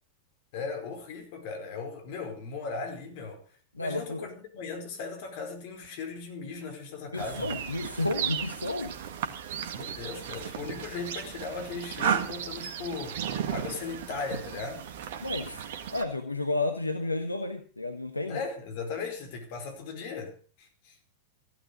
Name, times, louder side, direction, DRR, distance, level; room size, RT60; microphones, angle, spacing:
voice 1, 0.5-3.4 3.8-7.6 9.7-14.9 18.3-21.0, left 4 dB, 50° left, 4.9 m, -37 dB
voice 2, 3.7-4.3 7.1-9.0 15.2-18.4, left 2 dB, 85° left, 1.3 m, -32 dB
sound 1, 7.2-16.0, right 8 dB, 55° right, 1.9 m, -35 dB
15.5 x 12.0 x 5.2 m
figure-of-eight pair, 90°, 0 cm